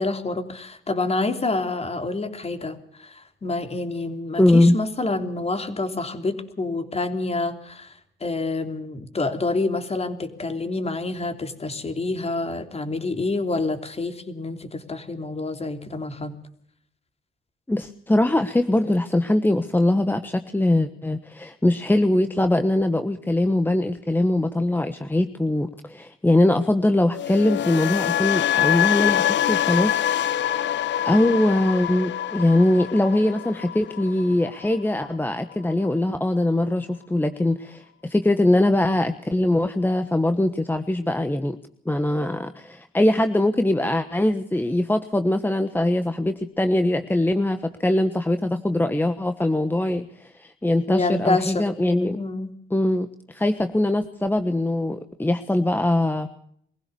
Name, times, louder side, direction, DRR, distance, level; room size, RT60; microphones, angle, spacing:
voice 1, 0.0-7.9 8.2-16.3 50.9-51.6 52.1-52.5, left 3 dB, 30° left, 7 dB, 3.2 m, -27 dB
voice 2, 4.4-4.8 17.7-30.0 30.5-30.6 31.0-41.6 41.8-52.2 52.7-56.3, left 1 dB, 10° left, 9 dB, 1.3 m, -22 dB
sound 1, 27.1-35.2 35.5-35.9, left 11 dB, 65° left, 0.7 m, -25 dB
23.5 x 16.0 x 6.9 m, 0.66 s
cardioid pair, 90°, 20 cm